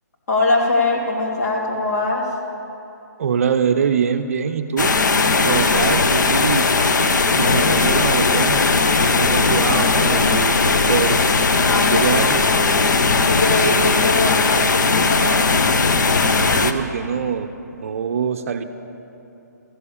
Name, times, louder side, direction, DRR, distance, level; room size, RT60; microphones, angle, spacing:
voice 1, 0.3-2.3 11.6-15.5, left 2 dB, 60° left, -2 dB, 2.8 m, -22 dB
voice 2, 3.2-5.0 5.4-6.7 7.3-8.6 9.0-11.2 11.9-12.4 16.3-17.5 17.7-18.6, right 7 dB, 50° right, 8 dB, 0.6 m, -23 dB
sound 1, 4.8-16.7, left 4 dB, 75° left, 0.8 m, -18 dB
14.0 x 6.9 x 8.5 m, 2.8 s
hypercardioid pair, 155°, 10 cm